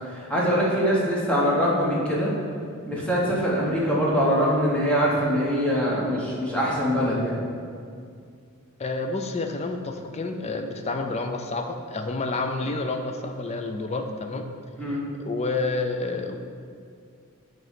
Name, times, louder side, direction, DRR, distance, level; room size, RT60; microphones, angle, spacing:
voice 1, 0.1-2.3 2.8-7.4 14.8-15.0, equal, 5° left, -6 dB, 1.2 m, -23 dB
voice 2, 8.8-14.5 15.2-16.4, left 3 dB, 30° left, 5 dB, 0.4 m, -29 dB
7.8 x 3.2 x 5.7 m, 2.3 s
head